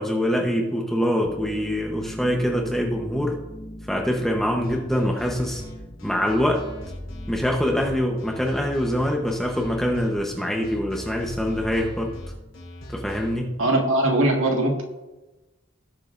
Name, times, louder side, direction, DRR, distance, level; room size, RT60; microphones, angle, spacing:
voice 1, 0.0-3.4 3.9-5.6 6.0-6.6 7.3-12.1 12.9-13.5, equal, ahead, 0 dB, 0.9 m, -24 dB
sound 1, 1.2-12.7, equal, 25° left, 1.5 m, -43 dB
sound 2, 4.6-13.4, equal, 70° left, 3.2 m, -39 dB
voice 2, 13.6-14.8, right 1 dB, 75° right, 1 dB, 1.9 m, -20 dB
18.5 x 7.6 x 2.6 m, 1.1 s
head